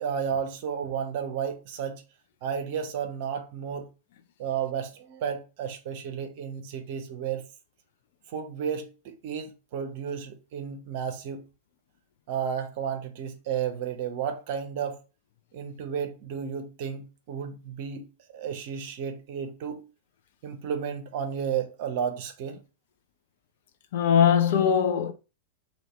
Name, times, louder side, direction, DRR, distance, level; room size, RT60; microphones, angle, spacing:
voice 1, 0.0-2.0 2.4-3.9 4.4-7.4 8.3-11.4 12.3-15.0 15.5-19.9 20.4-22.6, right 7 dB, 50° right, 0.7 m, -32 dB
voice 2, 23.9-25.1, left 8 dB, 55° left, 0.5 m, -21 dB
2.8 x 2.7 x 3.2 m
figure-of-eight pair, 90°, 0 cm